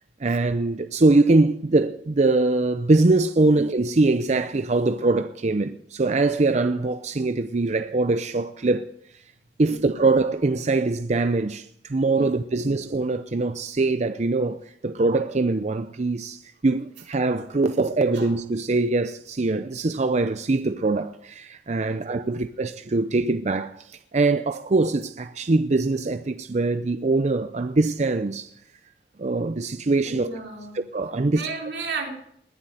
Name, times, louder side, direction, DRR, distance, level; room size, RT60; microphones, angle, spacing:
voice 1, 0.2-8.9 9.6-28.5 29.2-30.3 30.7-31.4, right 3 dB, 40° right, 0.6 m, -23 dB
voice 2, 9.6-10.1 12.1-12.6 18.1-18.3 21.8-22.3 30.0-30.8 31.3-32.1, right 4 dB, 80° right, 3.9 m, -35 dB
20.0 x 7.6 x 9.1 m
head